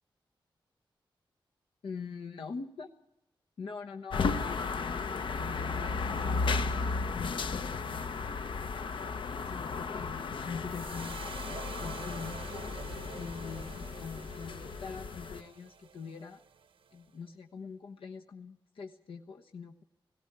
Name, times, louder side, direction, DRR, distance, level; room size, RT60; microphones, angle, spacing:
voice 1, 1.8-2.9 3.6-6.7 7.1-8.2 9.5-12.4 13.1-16.4 16.9-19.8, left 5 dB, 85° left, 2 dB, 1.2 m, -44 dB
sound 1, 4.1-15.4, left 4 dB, 70° left, 0.9 m, -34 dB
sound 2, 10.7-17.0, right 6 dB, 80° right, 0.9 m, -48 dB
18.5 x 16.5 x 8.8 m, 0.84 s
wide cardioid pair, 140°, 9 cm